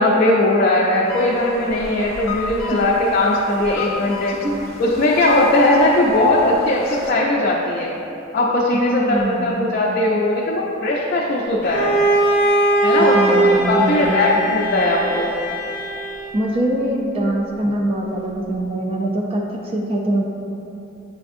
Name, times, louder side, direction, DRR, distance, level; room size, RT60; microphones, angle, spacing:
voice 1, 0.0-4.4 4.8-7.9 8.3-12.0 12.8-15.3, left 1 dB, 45° left, -4 dB, 0.4 m, -18 dB
sound 1, 1.0-7.1, left 3 dB, 90° left, 0.6 m, -33 dB
voice 2, 8.9-9.7 13.1-14.4 16.3-20.2, right 1 dB, 30° right, -1 dB, 0.3 m, -23 dB
Bowed string instrument, 11.6-16.4, right 2 dB, 10° left, 0.8 m, -20 dB
7.4 x 2.5 x 2.5 m, 2.8 s
head